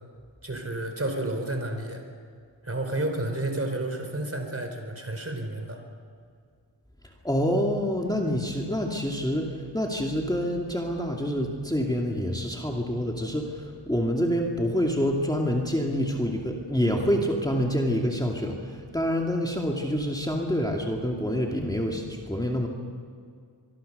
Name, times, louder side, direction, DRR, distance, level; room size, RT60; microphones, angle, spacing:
voice 1, 0.4-2.0 2.6-5.8, right 2 dB, 30° right, 5 dB, 4.3 m, -31 dB
voice 2, 7.2-22.7, equal, 10° left, 0 dB, 2.5 m, -27 dB
24.0 x 23.5 x 6.8 m, 2.2 s
wide cardioid pair, 95°, 44 cm